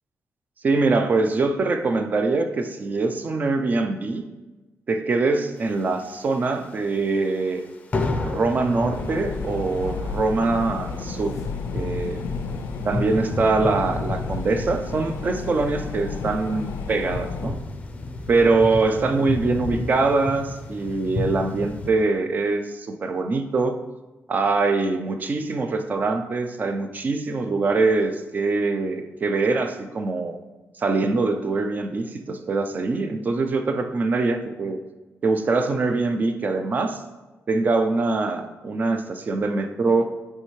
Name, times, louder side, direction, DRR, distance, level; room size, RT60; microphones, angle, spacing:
voice 1, 0.6-4.2 4.9-7.6 8.2-11.4 11.7-12.2 12.8-17.6 18.3-23.8 24.3-30.4 30.8-34.8 35.2-37.0 37.5-40.1, right 3 dB, 35° right, 6 dB, 0.5 m, -23 dB
sound 1, 5.7-6.7 7.0-7.2 7.5-7.7 7.9-21.9, left 2 dB, 25° left, 0.5 m, -32 dB
sound 2, 8.9-17.5, left 5 dB, 90° left, 0.4 m, -32 dB
9.7 x 3.3 x 3.2 m, 1.1 s
wide cardioid pair, 155°, 5 cm